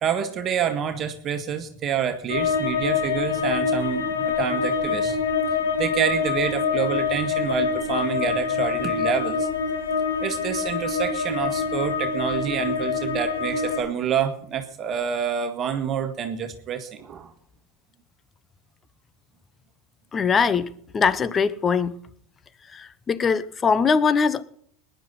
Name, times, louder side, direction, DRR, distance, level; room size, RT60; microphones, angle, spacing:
voice 1, 0.0-5.2 5.8-9.5 10.2-17.3, right 8 dB, 35° right, 1.7 m, -27 dB
sound 1, 2.3-13.8, left 5 dB, 75° left, 1.9 m, -25 dB
voice 2, 20.1-21.9 22.7-24.4, left 5 dB, 25° left, 1.0 m, -22 dB
21.5 x 10.5 x 4.1 m
figure-of-eight pair, 80°, 0 cm